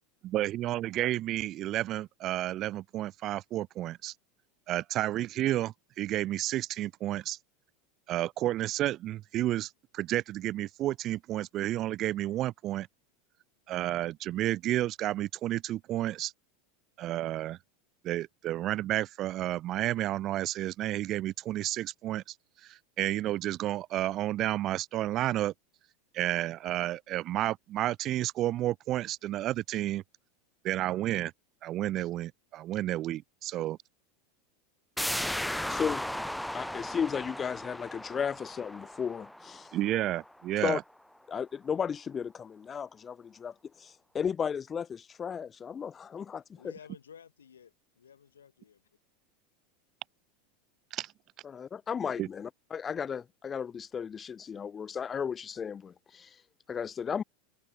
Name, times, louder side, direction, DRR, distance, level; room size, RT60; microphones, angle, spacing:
voice 1, 0.2-4.1 4.7-7.4 8.1-12.9 13.7-16.3 17.0-17.6 18.0-22.2 22.6-25.5 26.1-30.0 30.6-31.3 31.6-33.8 39.7-40.8 50.9-51.1 52.2-52.3, right 14 dB, 40° right, 0.4 m, -31 dB
sound 1, 35.0-40.4 40.8-40.9, left 1 dB, 5° left, 1.5 m, -36 dB
voice 2, 35.2-36.0 36.5-39.7 40.6-40.8 41.3-46.6 51.4-56.4 56.7-57.2, left 7 dB, 25° left, 0.5 m, -35 dB
voice 3, 46.6-48.8, left 7 dB, 80° left, 4.4 m, -53 dB
figure-of-eight pair, 85°, 0 cm